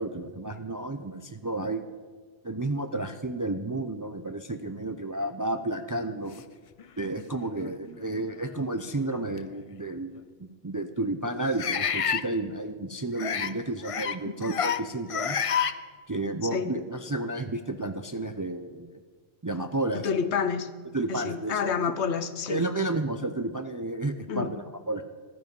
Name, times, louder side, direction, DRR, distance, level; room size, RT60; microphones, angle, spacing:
voice 1, 0.0-1.8 2.4-6.4 7.0-15.4 16.1-19.0 19.4-20.1 20.9-21.6 22.5-25.0, right 2 dB, 30° right, 8 dB, 0.3 m, -31 dB
sound 1, 6.8-6.9 7.6-7.8 9.4-9.5 11.6-12.2 13.2-13.5 13.8-14.2 14.4-14.8 15.1-15.7, left 7 dB, 50° left, 0.4 m, -28 dB
voice 2, 20.0-20.7 21.1-22.6 24.3-24.5, left 6 dB, 85° left, 11 dB, 1.1 m, -28 dB
14.5 x 12.5 x 5.3 m, 1.5 s
omnidirectional pair, 1.1 m